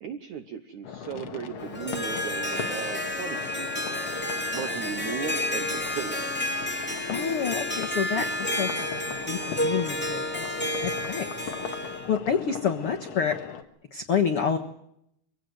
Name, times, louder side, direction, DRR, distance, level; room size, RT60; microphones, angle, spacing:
voice 1, 0.0-3.8 4.5-6.3, right 8 dB, 80° right, 9 dB, 1.7 m, -37 dB
sound 1, 0.8-13.6, left 7 dB, 55° left, 2.0 m, -39 dB
Harp, 1.6-12.1, left 1 dB, 5° left, 1.2 m, -31 dB
voice 2, 7.1-11.3 11.8-13.4 13.9-14.6, left 7 dB, 80° left, 4 dB, 1.2 m, -29 dB
24.0 x 17.5 x 7.9 m, 0.76 s
omnidirectional pair, 4.9 m